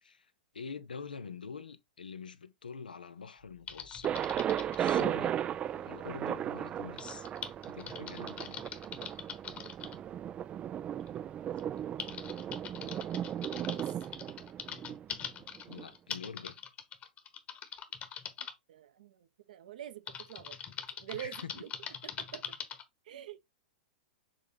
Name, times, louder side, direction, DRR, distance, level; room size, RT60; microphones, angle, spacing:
voice 1, 0.0-4.1 4.8-5.4 5.7-7.3 7.7-8.6 15.7-16.5 21.1-21.5, left 5 dB, 85° left, 0.8 m, -45 dB
Typing, 3.7-5.1 7.0-10.0 11.0-11.1 11.6-18.5 20.1-22.8, left 8 dB, 30° left, 1.3 m, -43 dB
Thunder, 4.0-15.8, right 10 dB, 25° right, 0.4 m, -36 dB
voice 2, 18.7-20.6 21.0-21.7 22.2-22.4 23.1-23.4, right 11 dB, 65° right, 0.9 m, -45 dB
7.1 x 3.5 x 3.8 m
hypercardioid pair, 105°, 5 cm